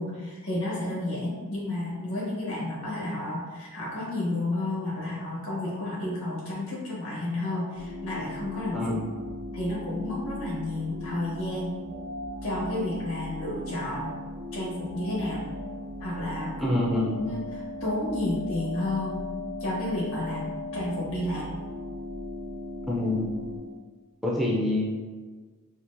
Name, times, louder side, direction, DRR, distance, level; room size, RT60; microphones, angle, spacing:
voice 1, 0.0-8.8 9.5-11.7 12.4-14.1 14.5-15.4 16.0-16.8 17.2-17.4 17.8-19.2 19.6-21.5, left 1 dB, 70° left, -6 dB, 1.2 m, -31 dB
sound 1, 7.7-23.6, left 1 dB, 80° right, 0.9 m, -38 dB
voice 2, 8.7-9.1 16.6-17.3 22.9-23.3 24.2-24.8, left 1 dB, ahead, -5 dB, 0.4 m, -26 dB
4.2 x 2.0 x 2.5 m, 1.4 s
head